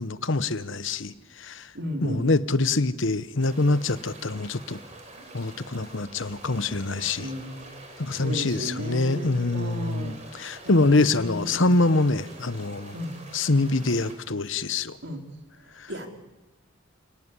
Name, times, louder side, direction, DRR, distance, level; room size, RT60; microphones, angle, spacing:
voice 1, 0.0-1.7 2.0-4.8 5.3-7.3 8.0-13.0 13.3-15.0 15.8-15.9, left 2 dB, 60° left, 1.0 m, -25 dB
voice 2, 1.7-2.3 7.2-7.7 8.1-10.2 10.6-11.7 12.9-13.1 15.0-15.2 15.9-16.1, equal, 55° right, 3.5 m, -34 dB
sound 1, 3.4-14.2, right 2 dB, 35° right, 4.6 m, -46 dB
29.0 x 18.5 x 9.9 m
head